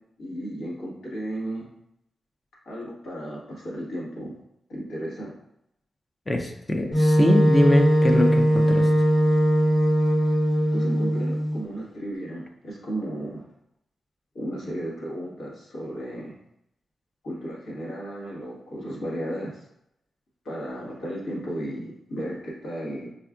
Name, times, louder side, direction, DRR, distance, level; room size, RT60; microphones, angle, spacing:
voice 1, 0.2-1.7 2.6-4.3 4.7-5.3 10.7-13.4 14.3-16.3 17.2-19.6 20.4-23.1, right 1 dB, 90° left, -6 dB, 1.4 m, -34 dB
voice 2, 6.3-8.9, left 1 dB, 25° left, 4 dB, 0.4 m, -22 dB
Wind instrument woodwind instrument, 6.9-11.6, equal, 65° left, 1.4 m, -20 dB
4.4 x 2.3 x 2.3 m, 0.79 s
cardioid pair, 90°, 0 cm